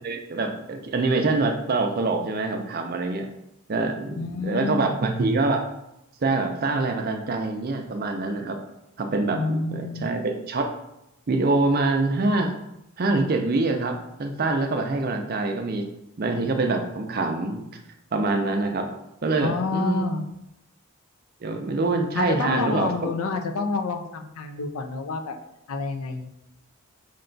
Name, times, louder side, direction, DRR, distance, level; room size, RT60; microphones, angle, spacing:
voice 1, 0.0-3.3 3.7-5.6 6.2-8.6 9.0-10.7 11.3-12.5 13.0-15.9 16.2-17.7 18.1-18.9 19.2-20.0 21.4-23.1, right 3 dB, 40° right, 4 dB, 0.4 m, -25 dB
voice 2, 4.1-4.9 9.3-10.0 19.4-20.2 22.2-25.3 25.7-26.3, left 3 dB, 75° left, 5 dB, 0.5 m, -28 dB
5.1 x 2.2 x 3.8 m, 0.85 s
head